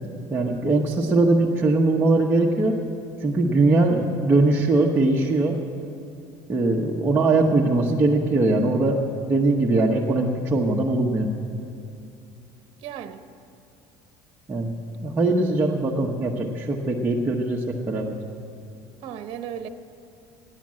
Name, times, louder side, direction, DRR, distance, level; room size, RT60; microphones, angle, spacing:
voice 1, 0.3-2.8 3.2-5.6 6.5-9.0 9.3-11.3 14.5-14.7 15.0-18.1, right 2 dB, 20° right, -3 dB, 1.0 m, -21 dB
voice 2, 12.8-13.2 19.0-19.7, right 9 dB, 60° right, 10 dB, 0.9 m, -35 dB
15.0 x 10.5 x 7.5 m, 2.6 s
cardioid pair, 130°, 11 cm